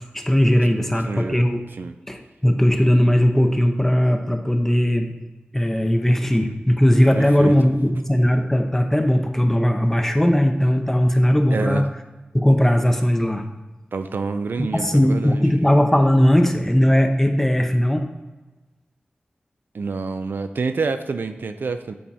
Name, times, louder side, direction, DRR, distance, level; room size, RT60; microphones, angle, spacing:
voice 1, 0.1-1.6 2.1-5.1 5.5-11.9 12.3-13.5 14.6-18.1, equal, 10° left, 5 dB, 0.7 m, -18 dB
voice 2, 1.1-1.4 1.8-1.9 7.2-7.5 11.5-11.9 13.9-15.4 19.7-21.9, right 4 dB, 75° right, 8 dB, 0.4 m, -27 dB
8.5 x 3.5 x 4.1 m, 1.2 s
wide cardioid pair, 90°, 4 cm